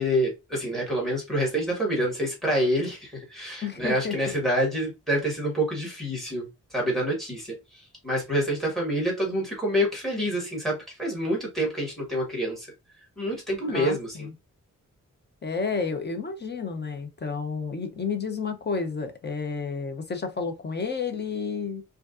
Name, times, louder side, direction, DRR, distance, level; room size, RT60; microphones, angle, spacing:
voice 1, 0.0-6.5 6.7-7.6 8.0-12.7 13.2-14.3, equal, ahead, 1.8 m, -27 dB
voice 2, 3.6-4.2 13.7-14.3 15.4-21.8, left 5 dB, 35° left, 0.7 m, -31 dB
4.9 x 2.6 x 2.5 m
wide cardioid pair, 180°, 32 cm